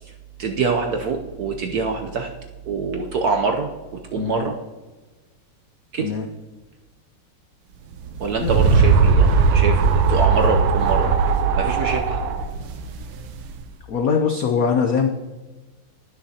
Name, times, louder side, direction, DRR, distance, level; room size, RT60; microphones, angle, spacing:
voice 1, 0.4-2.3 2.7-4.5 5.9-6.1 8.2-11.1 11.6-12.2, right 4 dB, 65° right, 4 dB, 0.9 m, -25 dB
voice 2, 4.2-4.5 6.0-6.3 8.4-8.5 13.9-15.1, left 6 dB, 75° left, 5 dB, 0.8 m, -21 dB
sound 1, 8.0-13.6, right 5 dB, 85° right, 1.7 m, -18 dB
18.5 x 6.5 x 2.8 m, 1.2 s
omnidirectional pair, 2.4 m